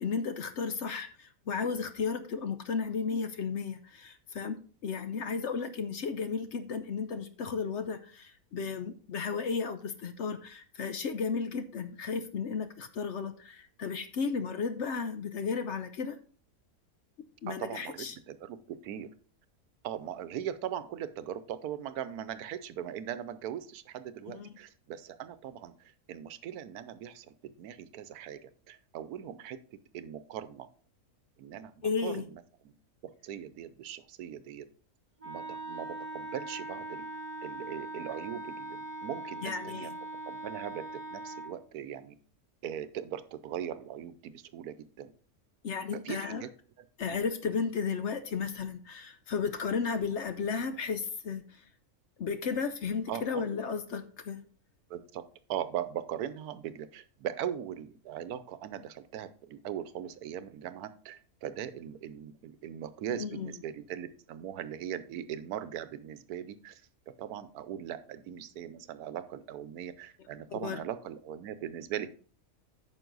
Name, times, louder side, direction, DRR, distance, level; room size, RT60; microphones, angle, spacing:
voice 1, 0.0-4.5 4.8-16.2 17.4-18.2 24.3-24.6 31.8-32.2 39.4-39.9 45.6-46.5 47.0-51.6 52.2-54.4 63.2-63.5 70.5-70.8, left 5 dB, 60° left, 10 dB, 0.8 m, -34 dB
voice 2, 17.5-19.1 19.8-29.6 29.9-30.7 31.4-32.7 33.2-34.7 35.2-37.0 37.4-39.9 40.2-42.2 42.6-45.1 45.9-46.5 53.1-53.5 54.9-72.1, right 10 dB, 85° right, 14 dB, 1.2 m, -40 dB
Wind instrument woodwind instrument, 35.2-41.6, right 2 dB, 10° right, 1.6 m, -41 dB
9.2 x 6.2 x 3.9 m, 0.43 s
omnidirectional pair, 1.6 m